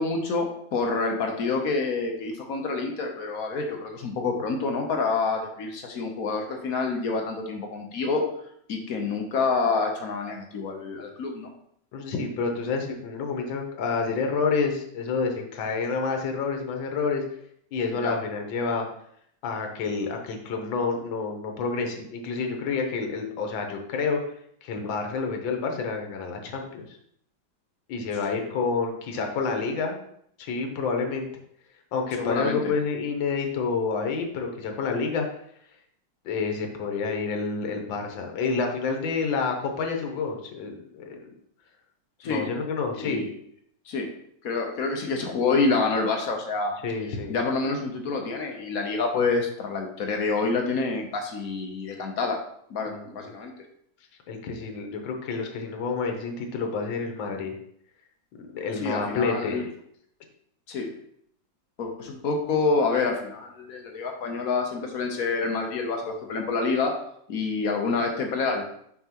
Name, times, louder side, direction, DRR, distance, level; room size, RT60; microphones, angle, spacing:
voice 1, 0.0-8.2 8.7-11.5 17.9-18.1 28.3-28.4 32.2-32.7 42.2-42.5 42.9-43.3 43.9-44.1 44.4-46.7 47.3-52.4 52.7-53.5 58.7-59.7 60.7-60.9 61.8-67.0 67.3-68.6, left 4 dB, 55° left, 2 dB, 1.1 m, -27 dB
voice 2, 11.9-17.2 17.7-18.9 19.4-24.2 24.6-26.8 27.9-30.0 30.4-31.3 31.9-35.3 36.2-41.3 42.2-43.2 46.8-47.4 52.9-53.1 54.3-57.5 58.4-59.7, left 4 dB, 85° left, 3 dB, 1.6 m, -28 dB
5.8 x 5.5 x 2.9 m, 0.68 s
omnidirectional pair, 2.0 m